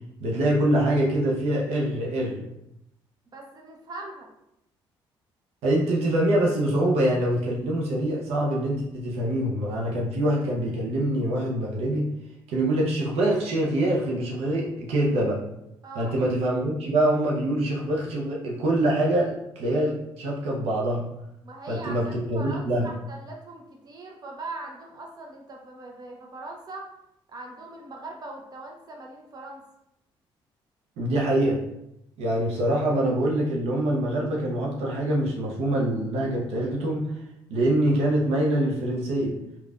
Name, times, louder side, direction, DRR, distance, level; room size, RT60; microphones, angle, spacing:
voice 1, 0.2-2.5 5.6-12.1 12.5-15.4 16.0-21.0 21.7-22.9 31.0-31.6 32.2-37.1 37.5-39.3, right 1 dB, 75° right, -2 dB, 0.6 m, -24 dB
voice 2, 3.3-4.3 15.8-16.1 21.4-26.9 27.3-29.6, right 2 dB, 40° right, 1 dB, 0.7 m, -40 dB
3.3 x 2.3 x 2.4 m, 0.82 s
supercardioid pair, 65°, 11 cm